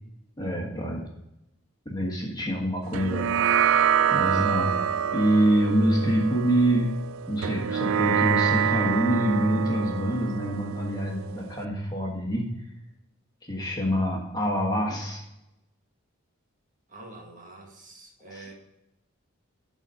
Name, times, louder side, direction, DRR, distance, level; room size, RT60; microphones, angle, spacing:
voice 1, 0.4-1.1 1.8-3.3 4.1-4.7 5.1-7.0 7.3-12.5 13.4-15.2 18.3-18.5, right 1 dB, 20° left, -1 dB, 1.4 m, -25 dB
sound 1, 2.9-11.6, right 8 dB, 80° right, 0.4 m, -26 dB
voice 2, 16.9-18.5, right 2 dB, 40° right, 0 dB, 1.7 m, -46 dB
12.0 x 4.2 x 5.4 m, 0.89 s
head